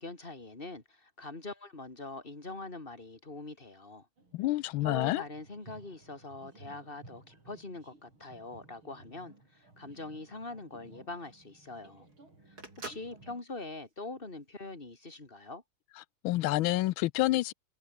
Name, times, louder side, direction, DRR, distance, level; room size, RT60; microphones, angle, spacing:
voice 1, 0.0-4.1 4.8-12.1 12.5-15.6, left 2 dB, 25° left, 3.2 m, -43 dB
sound 1, 4.2-13.4, right 2 dB, 75° right, 8.0 m, -57 dB
voice 2, 4.3-5.2 16.2-17.5, left 17 dB, 80° left, 1.4 m, -28 dB
Telephone, 9.8-14.9, right 2 dB, 45° right, 6.0 m, -50 dB
omnidirectional pair, 2.3 m